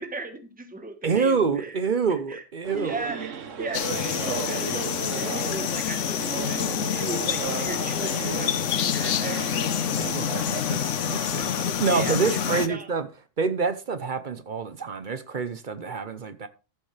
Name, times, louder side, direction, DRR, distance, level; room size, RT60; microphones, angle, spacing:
voice 1, 0.0-1.8 2.3-2.4 2.7-9.4 11.9-12.9, right 3 dB, 5° right, 1.2 m, -36 dB
voice 2, 1.0-3.0 10.0-13.1 13.4-16.5, right 5 dB, 45° right, 0.8 m, -27 dB
sound 1, 2.6-11.6, right 6 dB, 70° right, 1.4 m, -35 dB
sound 2, 3.7-12.7, left 9 dB, 70° left, 1.1 m, -27 dB
13.5 x 7.5 x 3.3 m
omnidirectional pair, 1.3 m